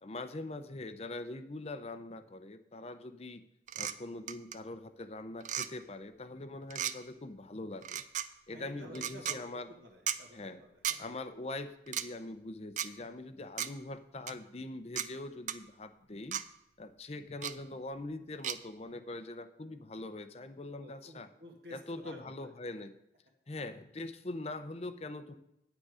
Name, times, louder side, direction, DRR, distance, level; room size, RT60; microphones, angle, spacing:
voice 1, 0.0-3.4 3.7-8.0 8.5-9.7 10.3-10.6 11.0-16.4 16.8-21.3 21.7-23.0 23.5-25.3, left 2 dB, 35° left, 10 dB, 0.6 m, -43 dB
sound 1, 3.7-3.9 4.3-4.6 5.4-5.7 6.7-6.9 7.8-8.3 8.9-9.4 10.1-10.2 10.8-11.0 11.9-12.1 12.8-12.9 13.6-13.7 14.3-14.4 15.0-15.1 15.5-15.6 16.3-16.4 17.4-17.5 18.4-18.6, right 10 dB, 45° right, 0.4 m, -34 dB
voice 2, 8.5-10.8 20.7-22.5, equal, 65° right, 0 dB, 1.7 m, -52 dB
9.4 x 8.9 x 4.9 m, 0.82 s
head